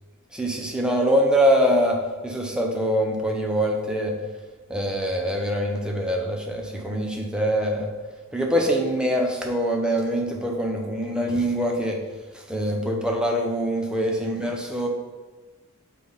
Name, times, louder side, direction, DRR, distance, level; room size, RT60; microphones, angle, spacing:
voice 1, 0.3-4.2 4.7-7.9 8.3-12.0 12.3-14.9, equal, 5° right, 0 dB, 0.7 m, -24 dB
5.9 x 3.3 x 5.4 m, 1.3 s
head